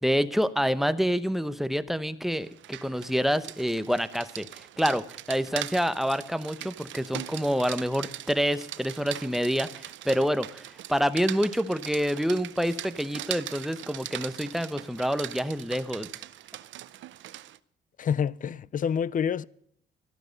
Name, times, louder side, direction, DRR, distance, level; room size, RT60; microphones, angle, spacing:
voice 1, 0.0-16.1, equal, ahead, 0.8 m, -27 dB
Rain, 2.4-17.6, right 13 dB, 75° right, 0.6 m, -41 dB
voice 2, 18.0-19.4, left 7 dB, 40° left, 0.5 m, -27 dB
13.5 x 12.0 x 5.2 m
cardioid pair, 90°, 20 cm